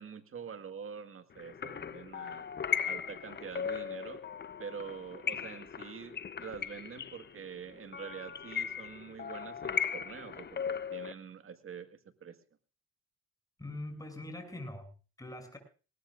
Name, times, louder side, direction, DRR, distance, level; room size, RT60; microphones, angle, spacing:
voice 1, 0.0-2.5 2.9-4.2 4.6-12.4, right 7 dB, 45° right, 9 dB, 1.9 m, -46 dB
sound 1, 1.4-11.1, left 7 dB, 35° left, 0.8 m, -37 dB
voice 2, 13.6-15.6, left 1 dB, 10° left, 3 dB, 7.6 m, -43 dB
21.5 x 19.0 x 2.6 m, 0.36 s
cardioid pair, 90°, 30 cm